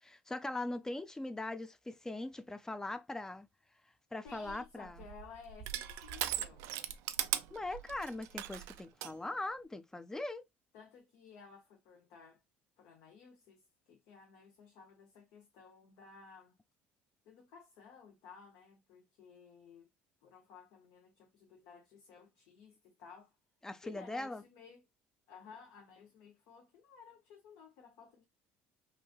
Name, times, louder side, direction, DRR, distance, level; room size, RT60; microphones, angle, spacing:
voice 1, 0.0-3.5 4.1-5.0 7.5-10.4 23.6-24.4, left 2 dB, 10° left, 0.4 m, -41 dB
voice 2, 4.2-6.7 10.7-12.4 12.8-16.5 17.2-19.9 20.2-23.3 23.8-24.8 25.3-28.2, left 6 dB, 75° left, 0.8 m, -56 dB
Crushing, 4.3-9.1, right 12 dB, 75° right, 0.3 m, -39 dB
3.1 x 2.5 x 2.3 m
supercardioid pair, 85°, 5 cm